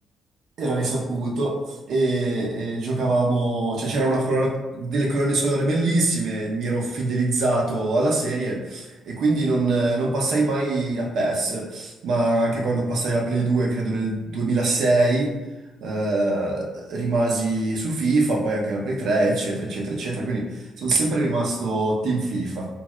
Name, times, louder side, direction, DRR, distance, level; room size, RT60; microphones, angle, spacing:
voice 1, 0.6-15.3 15.8-22.7, right 2 dB, 75° right, -1 dB, 0.6 m, -23 dB
3.0 x 2.6 x 2.3 m, 1.1 s
cardioid pair, 90°, 0 cm